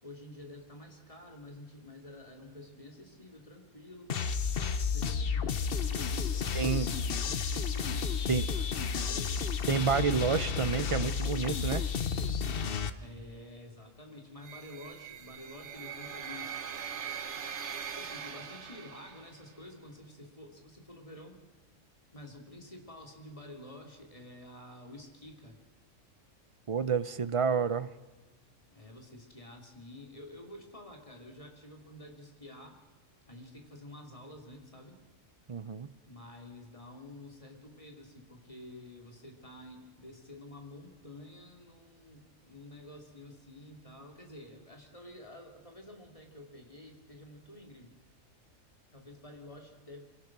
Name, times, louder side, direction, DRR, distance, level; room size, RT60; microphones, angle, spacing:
voice 1, 0.0-4.5 4.9-9.7 13.0-17.1 17.9-21.4 22.1-25.6 28.7-32.8 33.3-35.0 36.1-47.9 48.9-50.0, left 1 dB, 25° left, 3 dB, 3.0 m, -50 dB
sound 1, 4.1-12.9, left 6 dB, 50° left, 1.0 m, -32 dB
voice 2, 6.5-6.9 8.3-8.4 9.7-11.8 26.7-27.9 35.5-35.9, right 6 dB, 35° right, 15 dB, 0.5 m, -29 dB
sound 2, 14.4-19.5, right 7 dB, 60° right, 1.3 m, -41 dB
26.0 x 17.0 x 6.1 m, 1.2 s
omnidirectional pair, 1.3 m